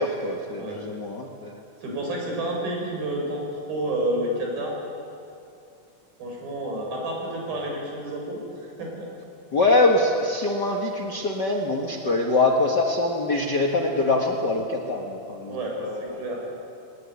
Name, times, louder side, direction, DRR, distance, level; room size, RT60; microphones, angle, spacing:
voice 1, 0.0-1.6 9.5-16.2, left 2 dB, 45° left, 2 dB, 1.4 m, -24 dB
voice 2, 1.8-4.8 6.2-9.1 15.5-16.4, right 1 dB, 85° right, 0 dB, 7.5 m, -30 dB
20.5 x 20.0 x 9.7 m, 2.6 s
omnidirectional pair, 4.1 m